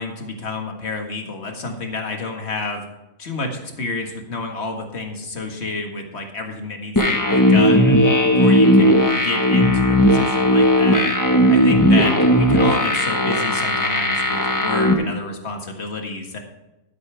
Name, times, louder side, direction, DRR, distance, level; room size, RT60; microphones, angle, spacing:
voice 1, 0.0-2.8 3.2-8.0 8.2-11.1 11.5-16.4, left 3 dB, 40° left, 3 dB, 1.9 m, -29 dB
sound 1, 7.0-14.9, equal, 15° left, 1.0 m, -16 dB
12.5 x 10.5 x 3.4 m, 0.99 s
omnidirectional pair, 1.8 m